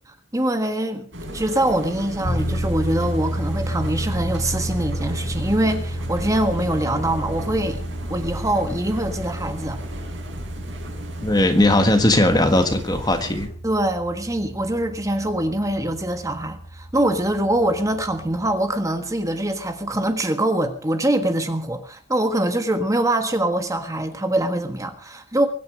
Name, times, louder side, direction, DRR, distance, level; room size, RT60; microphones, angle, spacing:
voice 1, 0.3-1.1 1.3-7.8 8.1-9.8 13.6-25.5, right 1 dB, 15° right, 1.5 m, -23 dB
sound 1, 1.1-13.5, right 1 dB, 65° right, 6.2 m, -35 dB
sound 2, 2.2-18.6, equal, 55° left, 3.3 m, -31 dB
voice 2, 11.2-13.5, left 1 dB, 20° left, 1.5 m, -18 dB
23.5 x 9.6 x 5.2 m
head